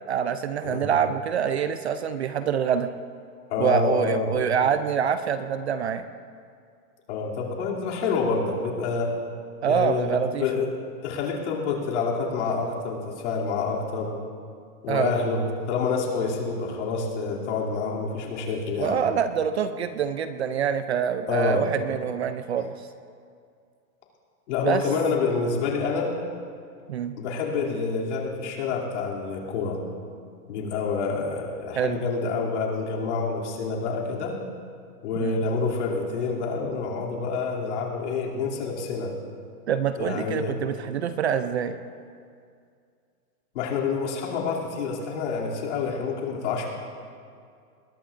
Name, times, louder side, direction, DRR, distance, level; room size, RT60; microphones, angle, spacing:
voice 1, 0.1-2.9 3.6-6.0 9.6-10.4 14.9-15.1 18.8-22.7 24.6-24.8 26.9-27.1 31.8-32.0 35.2-35.4 39.7-41.8, right 8 dB, 45° right, 10 dB, 0.5 m, -25 dB
voice 2, 3.5-4.3 7.1-9.1 9.7-10.7 11.0-14.2 14.8-19.0 21.3-21.6 24.5-26.2 27.2-29.8 30.5-34.4 35.0-39.1 40.0-40.6 43.5-46.7, left 4 dB, 45° left, -3 dB, 2.9 m, -27 dB
21.5 x 19.0 x 2.6 m, 2.3 s
supercardioid pair, 170°, 47 cm